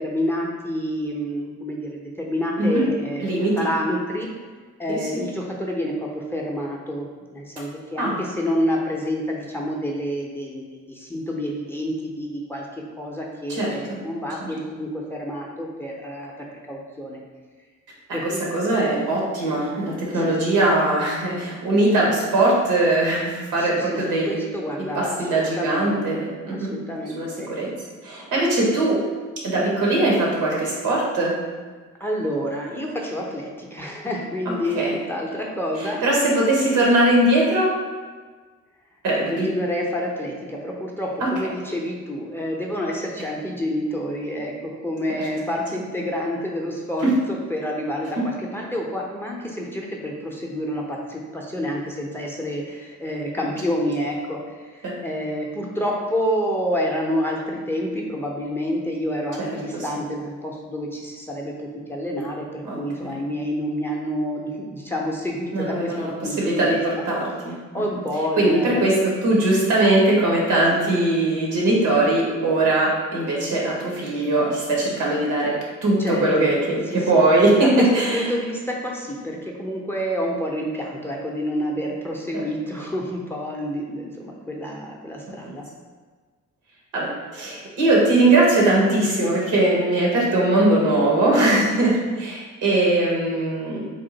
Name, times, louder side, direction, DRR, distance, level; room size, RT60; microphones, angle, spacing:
voice 1, 0.0-4.3 4.8-12.7 13.0-17.2 18.1-18.4 20.1-20.3 21.5-21.6 23.6-27.5 32.0-36.0 39.1-67.0 67.7-69.0 76.0-76.5 76.9-77.2 77.8-85.7, equal, 10° left, -2 dB, 0.6 m, -28 dB
voice 2, 3.2-3.5 4.9-5.2 8.0-8.2 13.5-14.0 14.4-14.5 18.1-24.4 24.9-26.7 27.2-27.7 28.0-29.0 29.4-31.3 34.5-35.0 36.0-37.7 39.0-39.5 41.2-41.3 47.0-47.1 54.8-54.9 59.4-59.8 62.6-63.2 65.5-67.5 68.4-68.9 69.2-75.5 75.8-78.3 85.4-85.5 86.9-87.1 87.3-93.8, right 2 dB, 85° right, -3 dB, 1.2 m, -20 dB
3.6 x 2.4 x 3.9 m, 1.4 s
cardioid pair, 90°, 30 cm